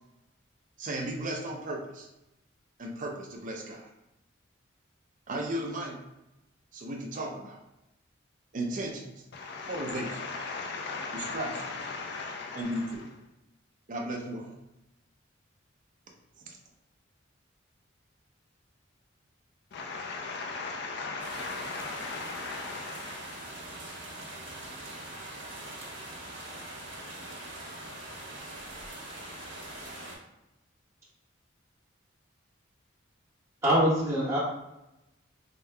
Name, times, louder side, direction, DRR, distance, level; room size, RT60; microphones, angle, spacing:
voice 1, 0.8-2.1 2.8-3.9 5.3-6.0 6.7-7.6 8.5-9.2 9.7-10.2 11.1-11.5 12.5-13.1 13.9-14.6 16.5-16.6, right 1 dB, 40° right, 0 dB, 0.6 m, -35 dB
voice 2, 9.3-12.7 19.7-23.4, left 4 dB, 55° left, 1 dB, 0.4 m, -37 dB
sound 1, 21.2-30.2, right 1 dB, 75° right, 1.2 m, -42 dB
voice 3, 33.6-34.4, equal, 15° right, -12 dB, 1.5 m, -24 dB
5.0 x 2.7 x 2.3 m, 0.92 s
head